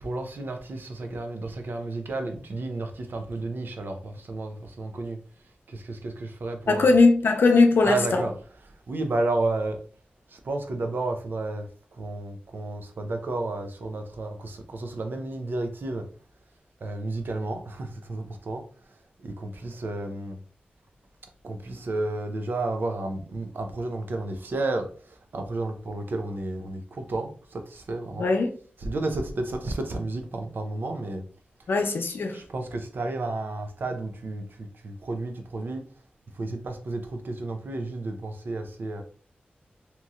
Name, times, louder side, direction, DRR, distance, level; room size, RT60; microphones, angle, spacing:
voice 1, 0.0-5.2 5.7-6.9 7.8-8.3 8.9-9.8 10.3-11.7 12.0-16.1 16.8-18.6 19.2-20.4 21.4-28.3 28.8-31.2 32.3-35.8 36.3-39.0, right 2 dB, 70° right, 0.5 m, -32 dB
voice 2, 6.7-8.2 28.2-28.5 31.7-32.4, left 3 dB, 80° left, 0.5 m, -20 dB
2.9 x 2.7 x 2.3 m
wide cardioid pair, 80°, 4 cm